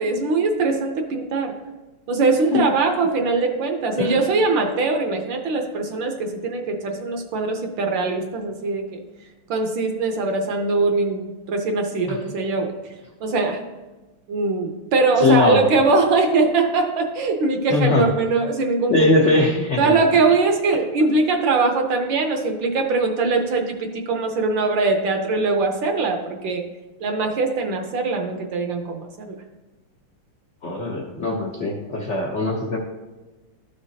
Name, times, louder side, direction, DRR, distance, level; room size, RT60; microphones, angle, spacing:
voice 1, 0.0-1.5 2.1-9.0 9.5-12.7 13.2-13.6 14.3-19.0 19.8-26.6 27.0-29.4, right 3 dB, 65° right, 4 dB, 1.4 m, -21 dB
voice 2, 15.2-15.6 17.7-18.1 18.9-19.9 30.6-32.8, left 3 dB, 75° left, -1 dB, 0.6 m, -20 dB
12.5 x 5.0 x 2.8 m, 1.2 s
omnidirectional pair, 2.4 m